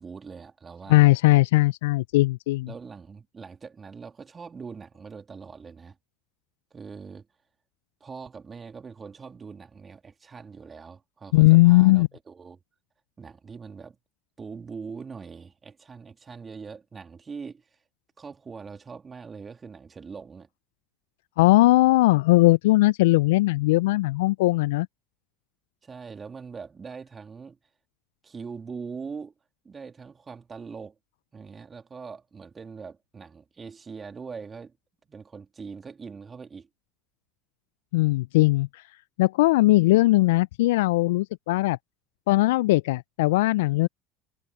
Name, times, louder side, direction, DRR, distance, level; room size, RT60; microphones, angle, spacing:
voice 1, 0.0-1.1 2.7-6.0 6.7-7.3 8.0-12.6 13.2-14.0 14.4-17.8 18.2-20.5 25.8-27.6 28.2-29.3 29.6-31.0 31.3-34.8 35.1-36.7, right 5 dB, 25° right, 3.2 m, -42 dB
voice 2, 0.9-2.7 11.3-12.1 21.4-24.9 37.9-38.8 39.2-41.8 42.3-43.9, left 19 dB, 70° left, 0.6 m, -19 dB
figure-of-eight pair, 70°, 0 cm